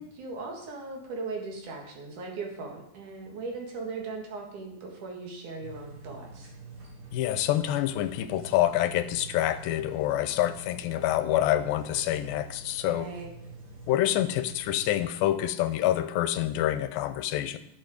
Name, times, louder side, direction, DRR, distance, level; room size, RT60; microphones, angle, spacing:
voice 1, 0.0-6.5 12.8-13.3, right 3 dB, 60° right, 0 dB, 3.1 m, -38 dB
sound 1, 5.6-14.9, right 3 dB, 90° right, 4.2 m, -46 dB
voice 2, 7.1-13.1 13.9-17.6, left 13 dB, 85° left, 11 dB, 2.4 m, -27 dB
11.0 x 7.7 x 5.0 m, 0.78 s
omnidirectional pair, 4.2 m